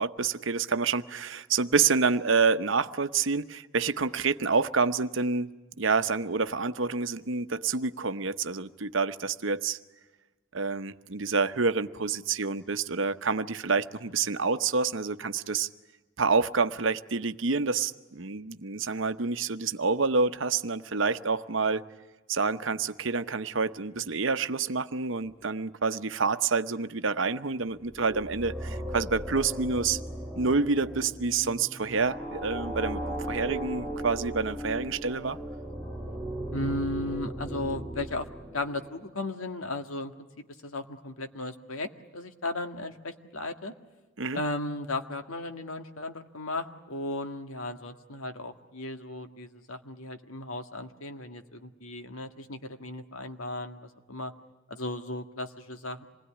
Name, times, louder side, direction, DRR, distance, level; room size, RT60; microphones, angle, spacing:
voice 1, 0.0-5.5 5.8-9.8 10.5-15.7 16.2-21.8 22.3-30.0 30.4-35.4 44.2-44.4, right 4 dB, 65° right, 0.9 m, -28 dB
sound 1, 27.8-39.0, right 1 dB, 5° left, 3.2 m, -37 dB
voice 2, 36.5-38.3 38.5-40.1 40.6-43.7 44.3-54.3 54.7-56.0, left 2 dB, 85° left, 1.8 m, -35 dB
27.0 x 20.5 x 10.0 m
head